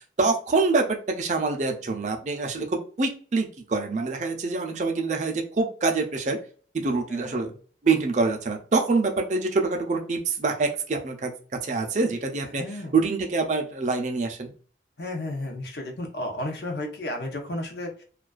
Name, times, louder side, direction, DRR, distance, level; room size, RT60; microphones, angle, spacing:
voice 1, 0.0-6.4 6.7-7.5 7.8-11.3 11.6-14.5, right 3 dB, 40° right, 3 dB, 0.4 m, -25 dB
voice 2, 7.1-7.5 12.6-12.9 15.0-18.0, left 1 dB, 65° left, 3 dB, 0.6 m, -33 dB
2.3 x 2.2 x 2.3 m, 0.41 s
head